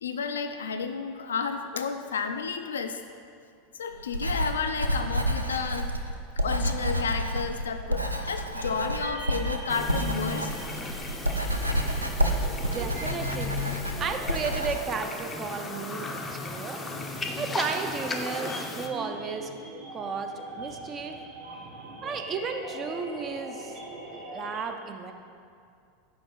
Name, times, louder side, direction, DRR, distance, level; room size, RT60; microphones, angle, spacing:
voice 1, 0.0-3.0 3.7-5.9 6.4-10.6, left 5 dB, 70° left, 7 dB, 0.3 m, -32 dB
Writing, 4.0-14.8, equal, 90° right, 0.3 m, -29 dB
sound 1, 8.5-24.6, right 2 dB, 50° right, 1.3 m, -43 dB
sound 2, 9.7-18.9, left 3 dB, 15° left, 0.5 m, -36 dB
voice 2, 12.3-13.6 14.0-16.8 17.4-19.5 19.9-21.2 22.0-23.8 24.1-25.1, right 5 dB, 30° right, 5 dB, 0.5 m, -34 dB
4.8 x 4.3 x 5.5 m, 2.3 s
figure-of-eight pair, 85°, 0 cm